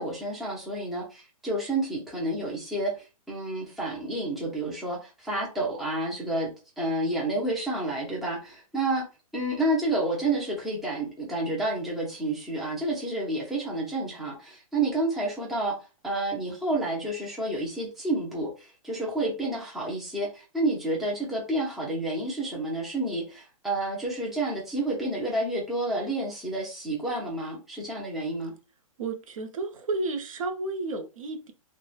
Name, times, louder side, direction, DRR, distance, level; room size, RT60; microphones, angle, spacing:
voice 1, 0.0-6.5 6.8-9.0 9.3-15.7 16.0-28.5, right 2 dB, ahead, 0.4 m, -30 dB
voice 2, 29.0-31.5, right 3 dB, 70° right, 0.6 m, -32 dB
3.0 x 2.1 x 2.3 m
hypercardioid pair, 155°, 18 cm